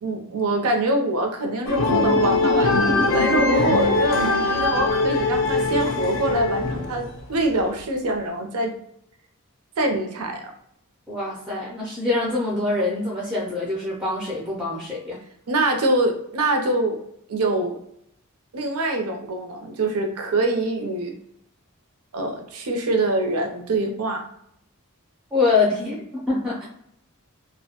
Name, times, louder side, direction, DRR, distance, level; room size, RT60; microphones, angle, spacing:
voice 1, 0.0-8.7 9.8-10.5 15.5-17.0 17.3-17.8 18.5-21.1 22.1-24.2, right 1 dB, 75° right, 4 dB, 0.5 m, -24 dB
sound 1, 1.7-7.2, left 3 dB, 60° left, 0.5 m, -21 dB
voice 2, 11.1-15.2 25.3-26.7, left 3 dB, 5° right, -5 dB, 0.4 m, -24 dB
2.1 x 2.1 x 2.8 m, 0.74 s
head